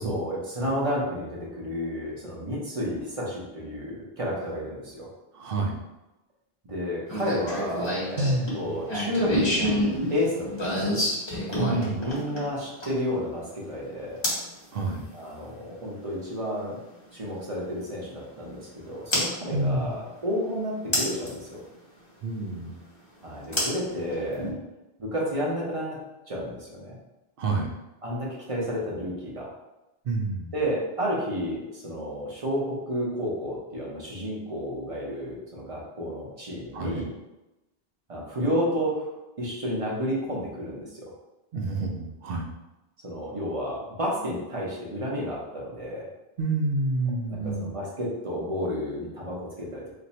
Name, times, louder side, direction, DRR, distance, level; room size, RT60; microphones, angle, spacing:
voice 1, 0.0-5.1 6.6-11.0 11.8-14.2 15.1-16.8 17.1-21.6 23.2-24.5 25.0-26.0 26.3-27.0 28.0-29.5 30.5-37.1 38.1-41.0 43.0-46.1 47.3-50.0, equal, 35° right, -4 dB, 0.8 m, -31 dB
voice 2, 5.3-5.8 8.2-8.7 11.6-12.0 14.7-15.0 19.5-19.9 22.2-22.8 27.4-27.7 30.0-30.5 36.7-37.0 41.5-42.5 46.4-47.7, right 2 dB, 70° right, 2 dB, 0.8 m, -28 dB
sound 1, 7.1-13.1 14.2-14.5 16.4-16.5 19.1-19.3 20.9-21.3 23.5-24.5, equal, 30° left, 1.0 m, -27 dB
2.6 x 2.5 x 4.1 m, 0.98 s
omnidirectional pair, 1.0 m